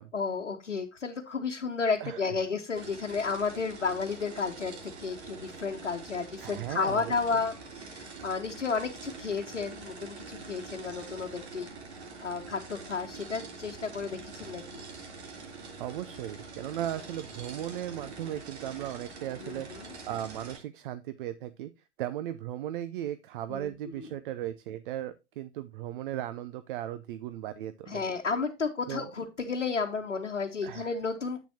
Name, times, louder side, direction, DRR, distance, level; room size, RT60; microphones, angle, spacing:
voice 1, 0.1-11.7 12.2-14.8 19.4-19.9 23.5-23.7 24.0-24.1 27.9-31.5, left 5 dB, 80° left, 2 dB, 1.1 m, -32 dB
voice 2, 2.0-2.3 6.4-7.1 15.6-21.7 22.0-28.0 28.9-29.1 30.6-30.9, right 12 dB, 50° right, 13 dB, 0.7 m, -37 dB
sound 1, 2.7-20.6, right 4 dB, 65° right, 3.2 m, -45 dB
10.0 x 8.4 x 2.8 m, 0.25 s
figure-of-eight pair, 95°, 35 cm